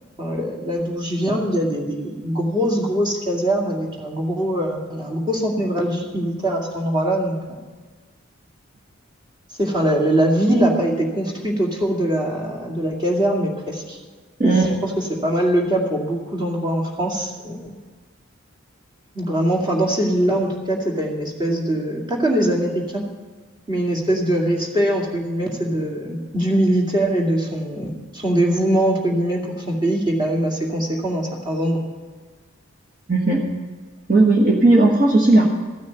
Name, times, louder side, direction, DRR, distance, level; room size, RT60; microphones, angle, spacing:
voice 1, 0.2-7.6 9.6-14.0 14.4-14.5 15.2-17.7 19.1-23.0 23.7-31.8, right 1 dB, 20° right, -1 dB, 2.2 m, -22 dB
voice 2, 14.4-14.8 33.1-33.5 34.1-35.5, right 2 dB, 40° right, -2 dB, 1.4 m, -15 dB
14.5 x 6.4 x 9.3 m, 1.4 s
head